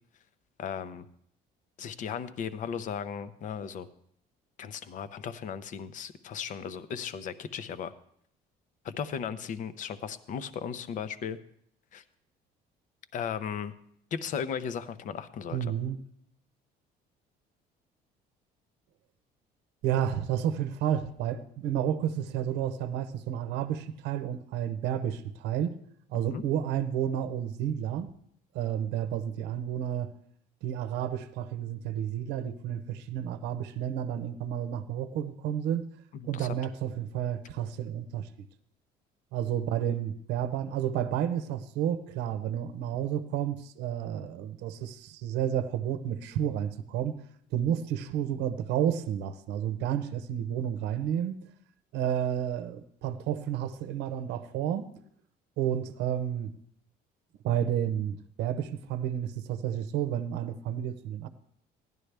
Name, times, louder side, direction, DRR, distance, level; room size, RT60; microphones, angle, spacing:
voice 1, 0.6-1.1 1.8-3.9 4.6-7.9 8.8-11.4 11.9-12.0 13.1-13.7 14.1-15.8 26.3-26.4 36.2-36.6, left 7 dB, 50° left, 13 dB, 0.6 m, -36 dB
voice 2, 15.5-16.0 19.8-25.7 26.1-28.1 28.5-30.1 30.6-35.8 36.3-38.5 39.3-47.2 47.5-51.4 51.9-54.9 55.6-56.5 57.4-61.3, right 10 dB, 90° right, 10 dB, 0.7 m, -31 dB
16.0 x 11.0 x 3.3 m, 0.68 s
cardioid pair, 140°, 17 cm